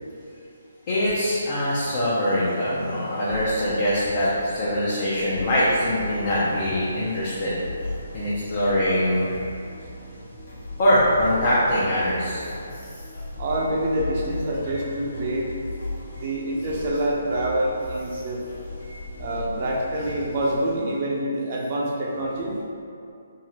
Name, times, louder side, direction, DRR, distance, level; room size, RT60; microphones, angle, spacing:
voice 1, 0.9-7.5 8.1-9.3 10.8-12.4 12.8-12.9, equal, 40° left, -8 dB, 0.5 m, -23 dB
sound 1, 1.0-20.7, left 2 dB, 65° left, 1.1 m, -37 dB
voice 2, 13.4-15.5 16.1-18.4 19.2-22.6, right 1 dB, 40° right, -3 dB, 0.5 m, -26 dB
3.5 x 2.0 x 2.8 m, 2.5 s
figure-of-eight pair, 140°, 0 cm